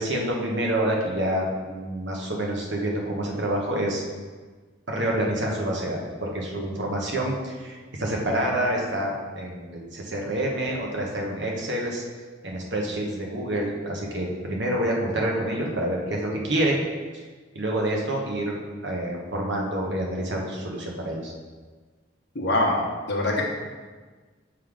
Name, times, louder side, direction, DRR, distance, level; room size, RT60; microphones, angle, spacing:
voice 1, 0.0-4.0 4.9-12.0 12.4-16.8 17.1-17.2 17.5-21.3, right 1 dB, 60° right, -1 dB, 1.2 m, -27 dB
voice 2, 22.3-22.8 23.1-23.4, left 2 dB, 60° left, -2 dB, 1.2 m, -23 dB
6.7 x 3.7 x 4.9 m, 1.4 s
head